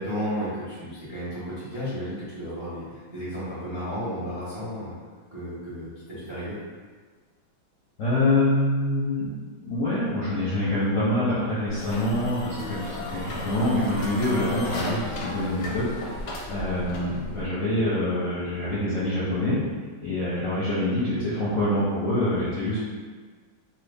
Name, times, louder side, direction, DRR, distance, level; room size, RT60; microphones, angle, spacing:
voice 1, 0.0-4.9 5.3-6.6, equal, 35° right, -11 dB, 0.4 m, -33 dB
voice 2, 8.0-9.3 9.6-15.9 16.2-19.6 20.0-22.8, left 1 dB, 60° left, -10 dB, 0.8 m, -25 dB
sound 1, 11.7-17.5, left 1 dB, 85° left, 1.4 m, -34 dB
3.2 x 2.2 x 3.3 m, 1.5 s
omnidirectional pair, 2.2 m